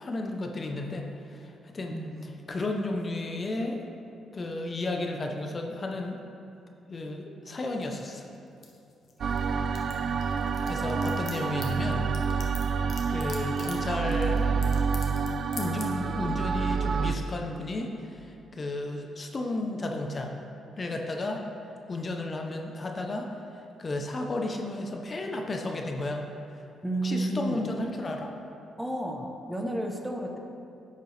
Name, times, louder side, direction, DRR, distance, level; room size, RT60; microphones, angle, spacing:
voice 1, 0.0-2.0 2.2-3.8 4.3-6.2 6.9-8.3 10.7-12.1 13.1-14.7 15.6-20.3 20.8-21.4 21.9-23.3 23.8-26.2 27.0-28.3, left 2 dB, 35° left, 2 dB, 0.7 m, -33 dB
voice 2, 1.9-2.3 26.8-27.7 28.8-30.4, right 1 dB, 5° right, 2 dB, 0.8 m, -32 dB
sound 1, 7.8-9.4 9.6-15.3 15.5-15.9, left 6 dB, 55° left, 1.2 m, -43 dB
sound 2, 9.2-17.1, right 5 dB, 60° right, 0.4 m, -28 dB
10.0 x 6.7 x 3.3 m, 2.6 s
cardioid pair, 90°, 0 cm